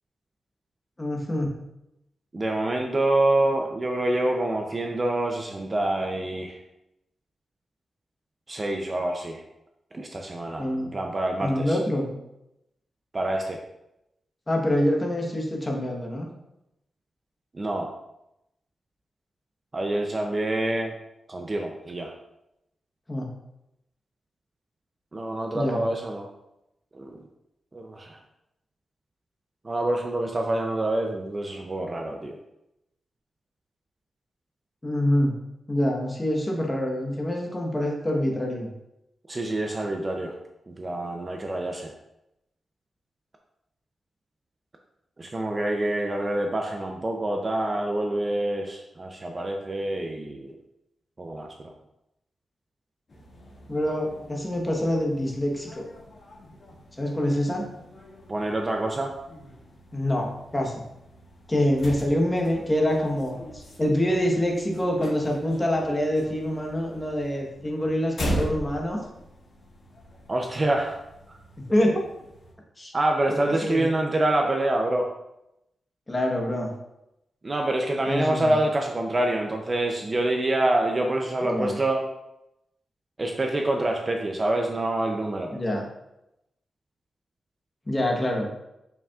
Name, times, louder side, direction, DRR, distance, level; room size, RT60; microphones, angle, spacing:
voice 1, 1.0-1.5 10.6-10.9 11.4-12.1 14.5-16.3 23.1-23.3 25.5-25.8 34.8-35.3 35.7-38.7 53.7-55.9 57.0-57.6 59.9-60.8 61.5-69.0 71.7-72.0 72.8-72.9 73.5-73.9 76.1-76.7 78.1-78.5 81.4-81.8 85.5-85.9 87.9-88.5, left 1 dB, 15° left, 0 dB, 1.1 m, -25 dB
voice 2, 2.3-6.6 8.5-9.4 9.9-11.8 13.1-13.6 17.5-17.9 19.7-20.9 21.3-22.1 25.1-26.3 26.9-27.2 27.7-28.2 29.6-32.4 39.3-40.4 40.7-41.9 45.2-50.6 51.2-51.7 58.3-59.1 70.3-71.0 72.9-75.1 77.4-82.1 83.2-85.5, right 1 dB, 25° right, 2 dB, 0.5 m, -26 dB
sound 1, 53.1-72.5, equal, 45° left, 1.8 m, -40 dB
7.0 x 5.7 x 2.4 m, 0.87 s
wide cardioid pair, 155°, 0 cm